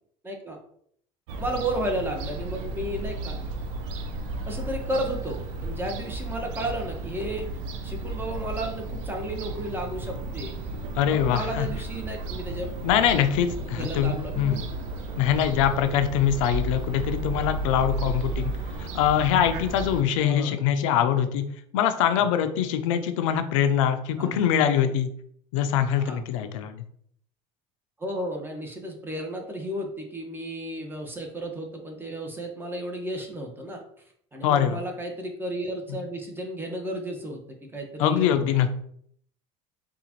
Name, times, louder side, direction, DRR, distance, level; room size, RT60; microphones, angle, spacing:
voice 1, 0.2-0.6 1.4-3.4 4.4-7.5 7.8-10.5 11.1-12.7 13.8-14.7 20.2-20.6 22.2-22.3 24.2-24.3 26.0-26.2 28.0-33.8 34.3-37.4 37.7-38.2, right 1 dB, 15° right, 1 dB, 1.0 m, -33 dB
Fowl / Gull seagull, 1.3-20.0, right 2 dB, 80° right, 0.5 m, -33 dB
voice 2, 11.0-11.7 12.8-14.7 15.2-18.5 18.8-21.4 21.7-25.1 25.5-26.8 34.4-34.8 38.0-38.7, left 9 dB, 85° left, 9 dB, 0.4 m, -23 dB
3.7 x 2.4 x 2.9 m, 0.66 s
supercardioid pair, 80°, 16 cm